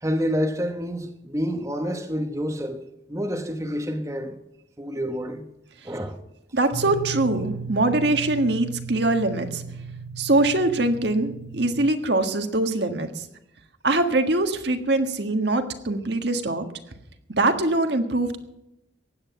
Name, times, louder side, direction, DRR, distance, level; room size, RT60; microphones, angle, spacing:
voice 1, 0.0-2.8 3.1-4.3 4.8-5.4 5.8-6.2, equal, 15° right, 1.1 m, -28 dB
voice 2, 6.5-9.6 10.2-13.3 13.8-16.6 17.3-18.4, right 2 dB, 60° right, 1.6 m, -23 dB
sound 1, 6.7-11.8, right 5 dB, 60° left, 1.5 m, -36 dB
16.0 x 10.0 x 7.0 m
head